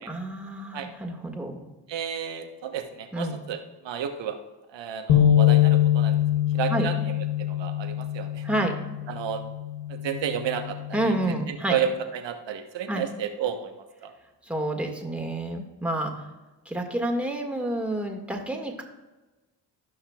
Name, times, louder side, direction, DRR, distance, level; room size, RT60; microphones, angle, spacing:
voice 1, 0.1-1.7 3.1-3.4 6.7-6.9 8.4-8.7 10.9-11.8 12.9-13.1 14.4-16.3 16.7-18.8, right 1 dB, 5° right, 1 dB, 1.9 m, -29 dB
voice 2, 1.9-3.6 3.8-4.4 4.7-6.2 6.5-6.9 7.4-8.4 9.1-9.4 9.9-10.8 11.0-11.1 11.5-13.7 14.0-14.1, right 8 dB, 65° right, 6 dB, 1.2 m, -31 dB
sound 1, 5.1-11.3, left 11 dB, 85° left, 0.9 m, -24 dB
16.5 x 5.7 x 2.4 m, 1.2 s
hypercardioid pair, 40°, 48 cm